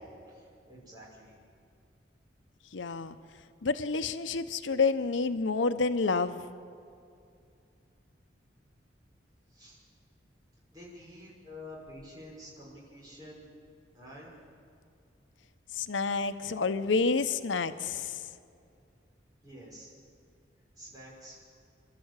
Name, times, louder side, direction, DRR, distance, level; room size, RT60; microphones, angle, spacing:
voice 1, 0.3-1.4 9.5-9.8 10.7-13.5 13.9-14.3 19.4-19.9 20.8-21.4, left 1 dB, 20° right, -4 dB, 5.9 m, -49 dB
voice 2, 2.7-3.2 3.6-6.4 15.7-18.2, left 4 dB, 90° left, 10 dB, 0.8 m, -29 dB
27.0 x 12.5 x 8.2 m, 2.4 s
head